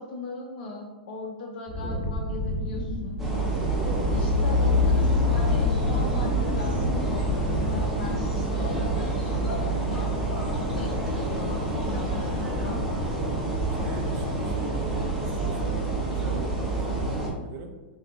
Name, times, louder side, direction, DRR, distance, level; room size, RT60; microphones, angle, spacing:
voice 1, 0.0-3.2 4.1-10.2 10.5-12.8, left 2 dB, 60° left, 0 dB, 0.5 m, -39 dB
Wind, 1.7-8.5 8.8-9.3, left 1 dB, 20° left, 1.5 m, -32 dB
voice 2, 1.8-2.1 3.8-4.7 13.8-15.8 16.1-17.9, right 5 dB, 40° right, 4 dB, 0.5 m, -41 dB
Truck, 2.6-13.9, left 4 dB, 85° right, 0.9 m, -31 dB
sound 1, 3.2-17.3, right 2 dB, 5° right, 0.8 m, -28 dB
4.0 x 2.2 x 2.7 m, 1.2 s
hypercardioid pair, 115°, 5 cm